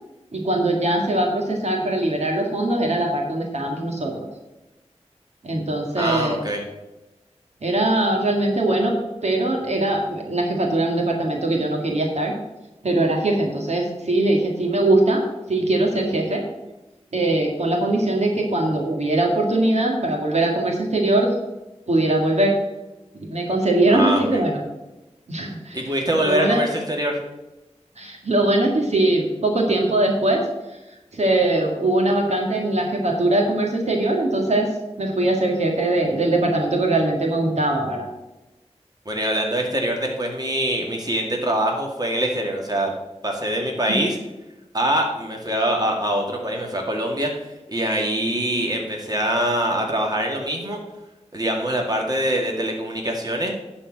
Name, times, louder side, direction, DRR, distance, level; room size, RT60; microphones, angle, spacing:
voice 1, 0.3-4.3 5.4-6.4 7.6-8.9 9.2-12.3 12.8-16.4 17.1-21.4 21.9-22.5 23.1-24.6 25.3-25.8 26.3-26.6 28.0-30.4 30.7-30.8 31.1-34.7 35.0-38.1, right 2 dB, 70° right, 0 dB, 2.0 m, -21 dB
voice 2, 6.0-6.6 23.9-24.4 25.7-27.2 39.1-42.9 43.2-44.2 44.7-47.3 47.7-50.8 51.3-53.5, right 1 dB, 35° right, 0 dB, 2.1 m, -24 dB
11.0 x 4.5 x 7.5 m, 1.0 s
wide cardioid pair, 65°, 12 cm